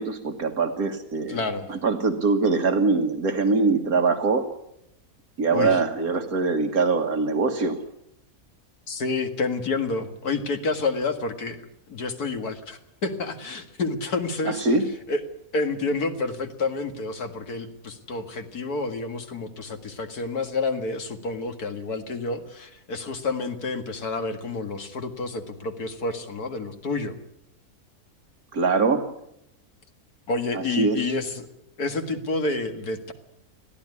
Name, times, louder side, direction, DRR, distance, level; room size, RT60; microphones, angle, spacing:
voice 1, 0.0-1.4 1.7-4.4 5.4-7.8 14.5-14.8 28.5-29.1 30.5-31.0, right 4 dB, 70° right, 5 dB, 1.9 m, -23 dB
voice 2, 1.3-1.7 5.5-5.8 8.9-11.6 11.9-14.6 15.1-15.2 15.5-27.1 30.3-31.5 31.8-33.1, left 3 dB, 75° left, 6 dB, 2.4 m, -29 dB
22.0 x 15.0 x 9.6 m, 0.80 s
omnidirectional pair, 1.6 m